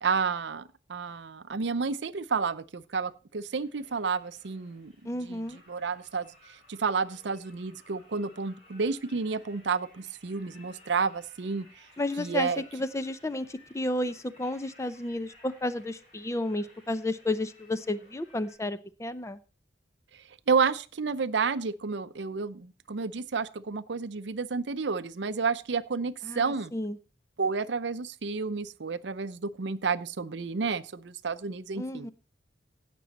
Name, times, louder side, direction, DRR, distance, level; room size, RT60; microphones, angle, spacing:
voice 1, 0.0-4.9 5.3-5.4 5.7-11.7 12.2-12.6 20.5-26.7 27.4-32.1, right 5 dB, 65° right, 15 dB, 0.6 m, -30 dB
sound 1, 3.4-18.6, left 1 dB, 40° left, 7.2 m, -58 dB
voice 2, 5.1-5.6 12.0-19.4 26.2-27.0 31.8-32.1, left 1 dB, 15° left, 13 dB, 0.5 m, -32 dB
16.5 x 6.2 x 4.1 m, 0.34 s
head